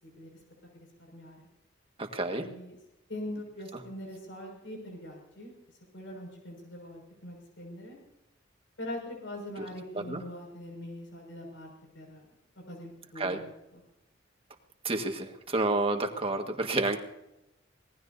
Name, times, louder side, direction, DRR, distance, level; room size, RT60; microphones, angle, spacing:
voice 1, 0.7-1.5 2.3-2.7 3.1-5.5 5.9-8.0 8.8-12.3 12.7-13.8, left 1 dB, 85° left, 0 dB, 6.1 m, -42 dB
voice 2, 2.0-2.5 9.6-9.7 10.0-10.2 13.2-13.4 14.8-17.0, right 2 dB, 30° right, 4 dB, 1.7 m, -30 dB
25.5 x 18.5 x 2.8 m, 0.91 s
head